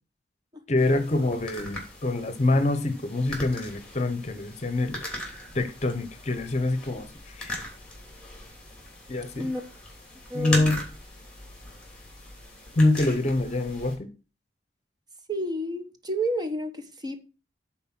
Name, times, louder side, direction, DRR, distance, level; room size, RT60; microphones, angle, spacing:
voice 1, 0.7-7.6 9.1-9.5 10.3-10.8 12.7-14.1, left 2 dB, 40° left, 0.9 m, -26 dB
sound 1, 0.8-14.0, left 1 dB, 5° left, 2.8 m, -39 dB
voice 2, 10.3-10.6 15.3-17.2, equal, 25° right, 1.1 m, -30 dB
9.5 x 4.4 x 6.0 m
head